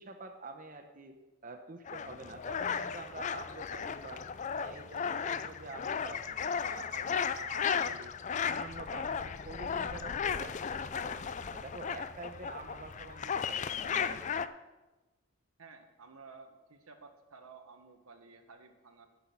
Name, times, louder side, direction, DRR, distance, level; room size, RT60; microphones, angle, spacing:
voice 1, 0.0-4.2 4.5-8.1 8.4-11.2 11.5-14.3, right 3 dB, 40° right, 5 dB, 0.8 m, -47 dB
sound 1, 1.9-14.5, left 6 dB, 35° left, 0.3 m, -35 dB
voice 2, 15.6-19.1, right 4 dB, 90° right, 5 dB, 1.4 m, -54 dB
9.8 x 6.1 x 8.5 m, 1.1 s
head